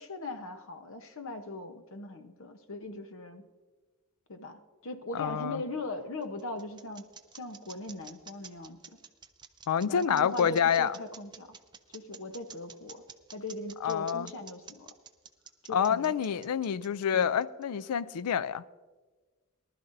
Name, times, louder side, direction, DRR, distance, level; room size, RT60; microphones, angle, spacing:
voice 1, 0.0-3.4 4.3-7.0 7.3-9.0 9.8-11.5 11.9-13.0 13.3-14.9 15.6-16.1 17.1-17.4, left 2 dB, 60° left, 0.9 m, -40 dB
voice 2, 5.1-5.6 9.7-11.0 13.8-14.3 15.7-18.6, left 8 dB, 85° left, 0.4 m, -28 dB
sound 1, 5.8-17.8, right 7 dB, 20° right, 0.5 m, -50 dB
19.0 x 12.0 x 2.6 m
head